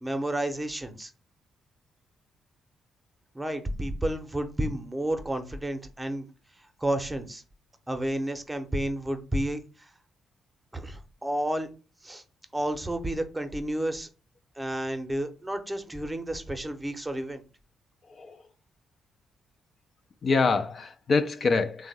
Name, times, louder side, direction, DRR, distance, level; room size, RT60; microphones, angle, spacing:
voice 1, 0.0-1.1 3.3-6.3 6.8-7.4 7.9-9.6 10.7-11.7 12.0-12.2 12.5-14.1 14.6-17.4, right 1 dB, 15° right, 0.6 m, -31 dB
voice 2, 18.1-18.4 20.2-21.9, left 4 dB, 50° left, 0.3 m, -25 dB
3.4 x 2.1 x 3.3 m
hypercardioid pair, 45°, 0 cm